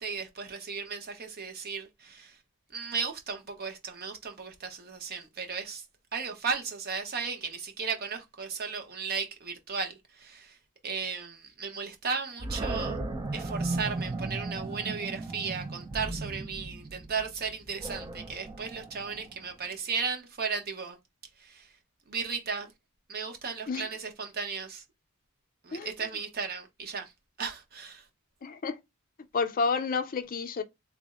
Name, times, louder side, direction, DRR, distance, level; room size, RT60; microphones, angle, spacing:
voice 1, 0.0-2.4 2.7-5.8 6.1-10.6 10.8-13.0 13.3-21.0 21.4-21.7 22.1-22.7 23.1-24.8 25.6-27.1 27.4-28.0, right 5 dB, 45° right, 0.8 m, -35 dB
Animal, 12.4-19.5, right 2 dB, 20° right, 0.4 m, -36 dB
voice 2, 28.4-28.8 29.3-30.6, left 4 dB, 40° left, 0.5 m, -30 dB
3.4 x 2.0 x 3.7 m
head